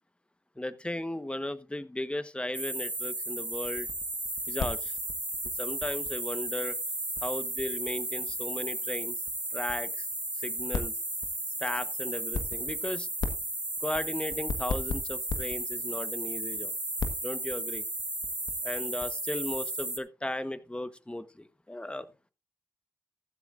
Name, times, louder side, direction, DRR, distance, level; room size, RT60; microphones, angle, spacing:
voice 1, 0.6-3.9 4.5-5.0 5.6-6.8 7.2-9.2 9.5-10.1 10.4-10.9 11.6-13.1 13.8-16.7 17.2-17.8 18.6-22.1, left 1 dB, 15° left, 12 dB, 1.2 m, -36 dB
sound 1, 2.5-20.0, right 2 dB, 20° right, 1.4 m, -34 dB
sound 2, 3.5-6.5 6.7-6.8 7.0-8.3 8.6-8.7 9.0-9.3 9.7-9.8 10.0-10.3 10.6-11.4 12.2-12.9 13.2-15.9 16.3-16.6 17.0-19.8, left 4 dB, 75° left, 1.4 m, -35 dB
14.5 x 11.0 x 2.6 m, 0.29 s
supercardioid pair, 40°, 7 cm